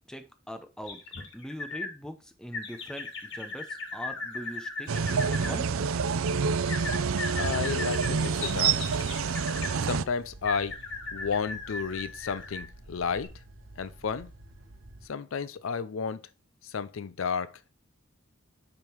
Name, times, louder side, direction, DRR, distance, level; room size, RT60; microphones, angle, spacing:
voice 1, 0.1-1.0 1.3-5.7, equal, 5° left, 0.8 m, -42 dB
sound 1, 0.8-1.9 2.5-5.5 6.7-9.8 10.4-12.7 13.2-13.3, left 3 dB, 60° left, 1.7 m, -38 dB
sound 2, 4.9-10.0, right 5 dB, 80° right, 0.5 m, -27 dB
sound 3, 6.6-15.1, right 1 dB, 65° right, 1.3 m, -50 dB
voice 2, 7.3-8.8 9.8-10.8 11.1-13.3 13.8-14.3 15.0-16.2 16.6-17.6, left 6 dB, 75° left, 0.5 m, -32 dB
9.8 x 3.7 x 4.6 m
head